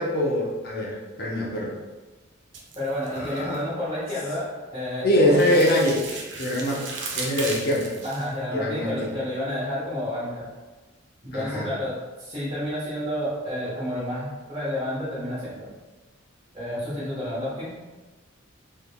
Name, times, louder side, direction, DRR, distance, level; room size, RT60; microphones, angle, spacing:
voice 1, 0.0-1.7 3.1-3.6 5.0-6.0 6.4-6.8 7.2-7.9 8.5-9.1 11.3-11.7, left 1 dB, 50° left, -3 dB, 0.7 m, -23 dB
sound 1, 2.5-3.6 5.1-8.3, right 4 dB, 60° right, 0.6 m, -35 dB
voice 2, 2.7-5.6 8.0-10.5 11.2-15.7 16.5-17.7, left 1 dB, 25° right, -12 dB, 1.1 m, -30 dB
3.7 x 3.3 x 2.3 m, 1.2 s
head